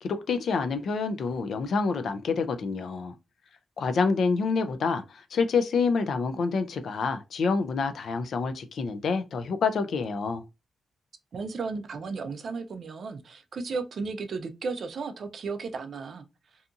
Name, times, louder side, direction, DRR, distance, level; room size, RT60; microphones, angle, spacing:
voice 1, 0.0-3.1 3.8-10.4, left 4 dB, 60° left, 0.3 m, -27 dB
voice 2, 11.3-16.2, right 4 dB, 50° right, 0.3 m, -34 dB
2.7 x 2.5 x 2.3 m
wide cardioid pair, 160°, 0 cm